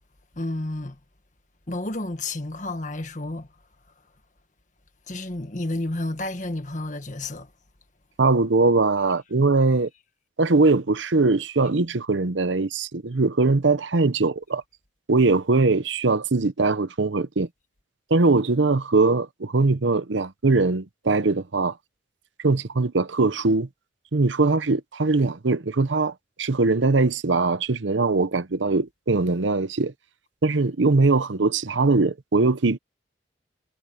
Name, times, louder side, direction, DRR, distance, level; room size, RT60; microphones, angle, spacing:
voice 1, 0.4-1.0 1.7-3.5 5.1-7.5, left 2 dB, 40° left, 1.7 m, -31 dB
voice 2, 8.2-9.9 10.4-14.6 15.1-17.5 18.1-21.7 22.4-23.7 24.1-26.1 26.4-29.9 30.4-32.8, right 3 dB, 80° right, 0.8 m, -21 dB
head